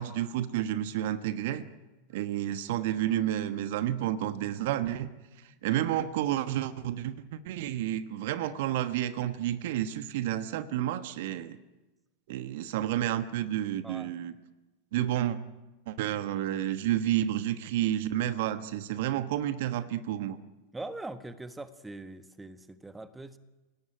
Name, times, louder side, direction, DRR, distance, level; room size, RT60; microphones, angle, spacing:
voice 1, 0.0-1.6 2.1-5.1 5.6-11.6 12.3-14.3 14.9-15.4 15.9-20.4, right 12 dB, 50° right, 12 dB, 1.2 m, -30 dB
voice 2, 20.7-23.4, right 2 dB, 10° right, 11 dB, 1.4 m, -42 dB
28.5 x 18.5 x 9.4 m, 1.1 s
figure-of-eight pair, 90°, 0 cm